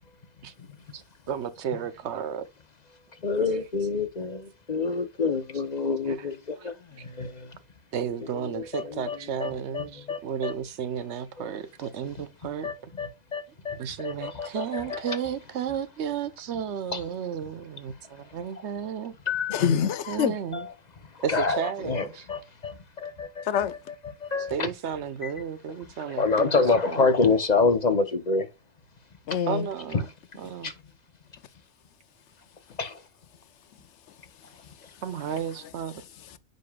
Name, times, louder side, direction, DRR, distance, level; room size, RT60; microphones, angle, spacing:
voice 1, 0.9-2.5 6.6-6.7 7.0-7.1 7.9-12.7 13.8-19.1 20.1-20.6 21.2-22.2 24.5-27.1 29.5-30.1 30.4-30.7 35.0-36.0, right 8 dB, 65° right, 0.9 m, -33 dB
voice 2, 3.2-7.5 8.3-10.5 11.4-11.5 12.6-15.2 16.9-17.0 19.3-19.7 20.5-20.6 21.1-23.4 24.2-24.7 25.2-25.3 26.2-28.5 29.9-30.0 30.6-30.7 32.8-33.0, left 4 dB, 40° left, 0.8 m, -27 dB
voice 3, 19.5-20.4 23.4-23.8 29.3-29.7 36.0-36.4, left 8 dB, 70° left, 0.9 m, -26 dB
9.3 x 5.3 x 2.3 m
omnidirectional pair, 1.3 m